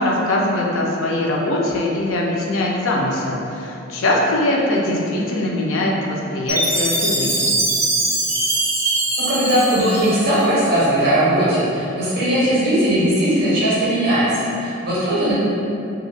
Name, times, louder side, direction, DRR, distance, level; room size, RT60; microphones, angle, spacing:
voice 1, 0.0-7.5, left 1 dB, 80° left, -2 dB, 0.5 m, -21 dB
Chime, 6.5-10.7, right 1 dB, 15° right, 0.4 m, -22 dB
voice 2, 9.3-15.3, right 1 dB, 50° right, -10 dB, 0.7 m, -18 dB
2.5 x 2.4 x 3.2 m, 2.8 s
head